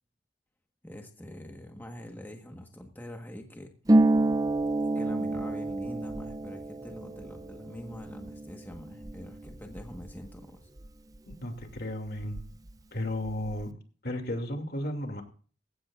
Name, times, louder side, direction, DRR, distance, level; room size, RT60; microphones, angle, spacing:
voice 1, 0.8-3.7 4.9-10.7, equal, 10° left, 2 dB, 1.5 m, -44 dB
Harp, 3.9-11.3 11.6-12.7 13.0-13.6, right 2 dB, 20° right, 0.6 m, -29 dB
voice 2, 11.3-12.4 12.9-13.7 14.0-15.2, left 1 dB, 55° left, 4 dB, 2.6 m, -34 dB
19.0 x 16.0 x 2.6 m, 0.42 s
head